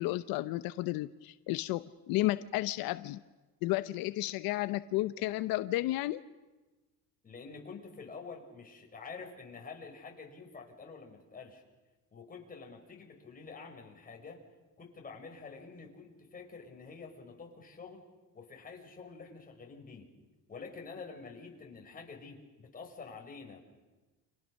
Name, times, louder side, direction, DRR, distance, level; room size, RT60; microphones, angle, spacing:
voice 1, 0.0-3.2 3.6-6.2, left 17 dB, 85° left, 13 dB, 0.8 m, -32 dB
voice 2, 7.2-11.6 12.1-14.4 14.8-18.0 18.3-20.1 20.5-23.6, left 4 dB, 25° left, 1 dB, 5.5 m, -48 dB
29.5 x 27.5 x 6.5 m, 1.2 s
cardioid pair, 140°, 34 cm